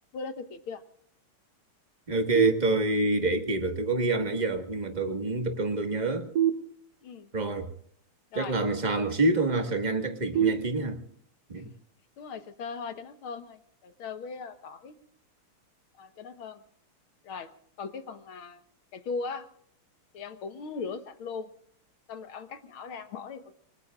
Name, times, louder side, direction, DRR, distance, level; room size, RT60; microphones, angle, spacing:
voice 1, 0.1-0.8 7.0-7.3 8.3-8.6 10.3-10.5 12.2-15.0 15.9-16.6 17.2-17.5 17.8-18.6 18.9-19.5 20.1-21.5 22.1-23.6, left 5 dB, 70° left, 2.1 m, -39 dB
voice 2, 2.1-6.3 7.3-7.7 8.3-11.0 11.5-11.7, right 2 dB, 20° right, 1.5 m, -27 dB
sound 1, 2.4-3.3 6.3-7.4 10.4-11.4, right 10 dB, 50° right, 2.0 m, -29 dB
29.0 x 19.5 x 2.4 m
omnidirectional pair, 2.4 m